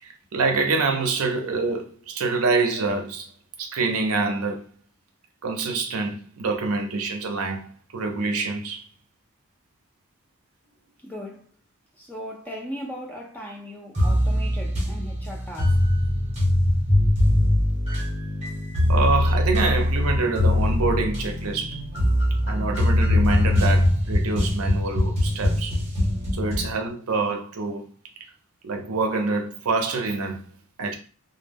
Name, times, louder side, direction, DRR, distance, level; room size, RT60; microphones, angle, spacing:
voice 1, 0.3-3.3 3.6-4.6 5.4-8.8 18.9-21.8 22.5-25.8 26.3-27.9 28.6-30.4 30.8-30.9, right 3 dB, 85° right, 0.6 m, -26 dB
voice 2, 11.0-11.5 12.0-15.9, equal, 10° left, 0.5 m, -38 dB
sound 1, 13.9-26.7, left 1 dB, 30° right, 0.9 m, -22 dB
2.1 x 2.0 x 3.4 m
head